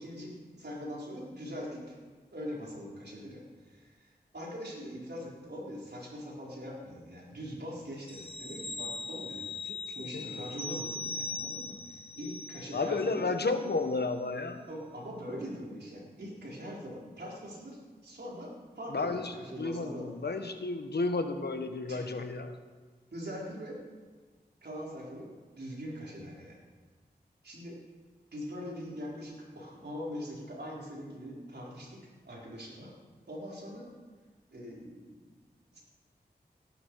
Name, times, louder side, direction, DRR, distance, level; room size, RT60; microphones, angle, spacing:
voice 1, 0.0-2.0 2.3-9.5 9.9-13.2 14.7-19.2 19.5-20.1 21.9-22.1 23.1-23.8 24.6-25.3 25.5-26.6 27.4-27.8 28.3-32.0 32.2-32.9 33.3-33.9 34.5-35.4 35.7-35.8, equal, 75° right, -4 dB, 4.3 m, -42 dB
sound 1, 8.1-13.2 13.5-13.7, left 3 dB, 35° left, 0.7 m, -40 dB
voice 2, 9.6-10.5 12.7-14.6 18.9-22.6, left 3 dB, 75° left, 7 dB, 1.3 m, -32 dB
18.0 x 11.5 x 4.7 m, 1.4 s
cardioid pair, 40°, 17 cm